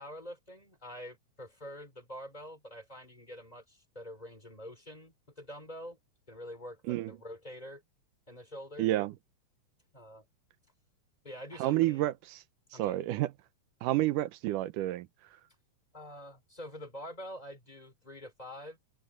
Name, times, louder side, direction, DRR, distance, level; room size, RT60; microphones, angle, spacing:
voice 1, 0.0-6.0 6.3-7.8 8.3-8.9 9.9-10.3 11.2-12.1 12.7-13.0 15.9-18.8, equal, 10° left, 3.6 m, -46 dB
voice 2, 8.8-9.1 11.6-12.1 12.8-13.3 13.8-15.1, right 15 dB, 80° right, 2.3 m, -29 dB
omnidirectional pair, 3.7 m